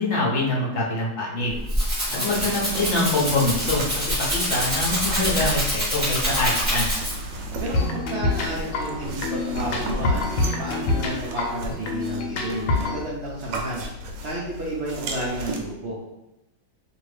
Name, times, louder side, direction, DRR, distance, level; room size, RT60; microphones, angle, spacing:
voice 1, 0.0-1.6 2.2-3.8 4.2-6.9, left 2 dB, 55° left, -4 dB, 0.8 m, -24 dB
Rattle (instrument), 1.4-7.4, equal, 10° right, 1.1 m, -26 dB
voice 2, 2.1-2.6 7.6-16.0, right 1 dB, 65° right, -6 dB, 0.6 m, -32 dB
sound 1, 2.3-15.6, right 1 dB, 90° right, 1.3 m, -35 dB
sound 2, 7.7-13.0, left 2 dB, 80° left, 1.2 m, -26 dB
2.7 x 2.7 x 3.2 m, 0.95 s
omnidirectional pair, 1.9 m